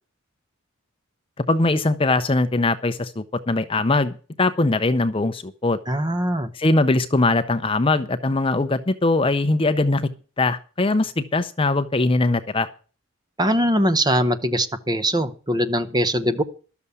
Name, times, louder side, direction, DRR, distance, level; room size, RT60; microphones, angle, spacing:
voice 1, 1.4-5.8 6.5-10.0 10.4-12.7, left 2 dB, 25° left, 11 dB, 0.6 m, -21 dB
voice 2, 5.9-6.5 13.4-16.4, equal, 20° right, 9 dB, 0.9 m, -21 dB
12.5 x 7.0 x 8.2 m, 0.38 s
head